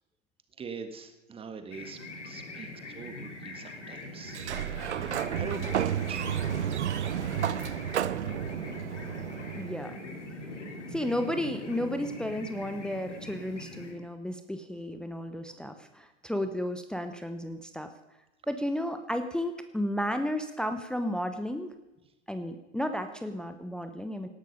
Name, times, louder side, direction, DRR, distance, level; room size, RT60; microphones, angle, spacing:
voice 1, 0.6-2.0 2.2-2.7 2.9-4.4 4.7-6.4, right 5 dB, 15° right, 8 dB, 1.7 m, -43 dB
sound 1, 1.7-13.9, left 2 dB, 70° left, 3.7 m, -42 dB
Sliding door, 4.3-9.9, right 10 dB, 65° right, 0.8 m, -32 dB
voice 2, 9.5-10.0 10.9-17.9 18.5-21.7 22.3-24.3, left 1 dB, ahead, 8 dB, 0.8 m, -33 dB
18.0 x 12.5 x 5.4 m, 0.98 s
figure-of-eight pair, 95°, 37 cm